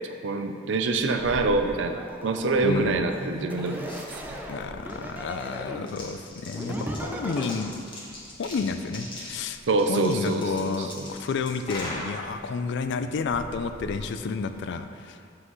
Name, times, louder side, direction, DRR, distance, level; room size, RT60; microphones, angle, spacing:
voice 1, 0.2-3.9 4.3-4.4 9.7-11.1, right 3 dB, 70° right, 6 dB, 0.5 m, -26 dB
sound 1, 1.2-14.8, left 1 dB, 25° left, 1.3 m, -42 dB
sound 2, 2.0-2.8 3.5-5.9 6.5-7.5, equal, 10° right, 0.5 m, -36 dB
voice 2, 2.6-3.0 4.5-7.7 8.4-9.6 9.9-15.2, left 4 dB, 65° left, 9 dB, 0.4 m, -30 dB
7.5 x 6.1 x 3.1 m, 2.3 s
head